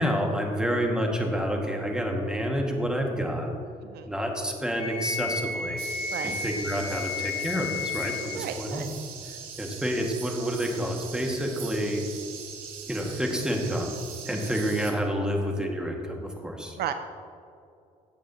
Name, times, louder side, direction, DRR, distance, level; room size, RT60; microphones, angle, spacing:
voice 1, 0.0-3.5 4.1-5.8 6.4-8.9 9.6-12.0 12.9-14.0 14.3-16.8, equal, 5° right, 1 dB, 1.9 m, -28 dB
Wind instrument woodwind instrument, 4.8-8.4, left 5 dB, 80° left, 1.6 m, -33 dB
sound 1, 5.8-14.9, right 7 dB, 90° right, 1.1 m, -41 dB
voice 2, 8.3-8.9 14.3-14.6 16.8-16.9, right 10 dB, 65° right, 9 dB, 0.5 m, -34 dB
12.0 x 8.2 x 2.9 m, 2.5 s
hypercardioid pair, 55°, 18 cm